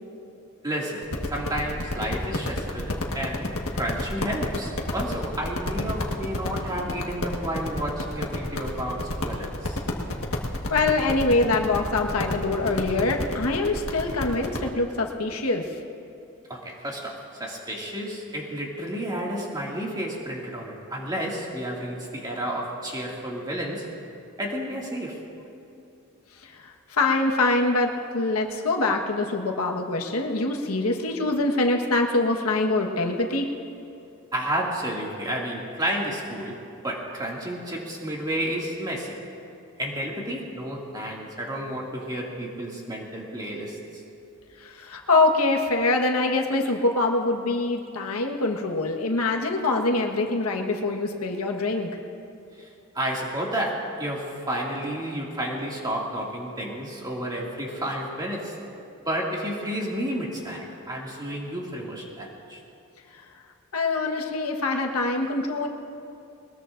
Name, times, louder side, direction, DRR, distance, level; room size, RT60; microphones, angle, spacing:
voice 1, 0.6-9.8 16.5-23.9 24.4-25.2 34.3-39.2 39.8-43.8 52.6-52.7 52.9-58.6 59.1-62.6, right 1 dB, 20° right, -3 dB, 2.2 m, -31 dB
sound 1, 1.0-14.7, left 1 dB, 75° left, 1.5 m, -31 dB
voice 2, 10.7-15.7 26.6-33.5 44.6-51.9 63.7-65.7, left 2 dB, 90° left, 2 dB, 1.4 m, -24 dB
21.0 x 20.5 x 2.6 m, 2.7 s
head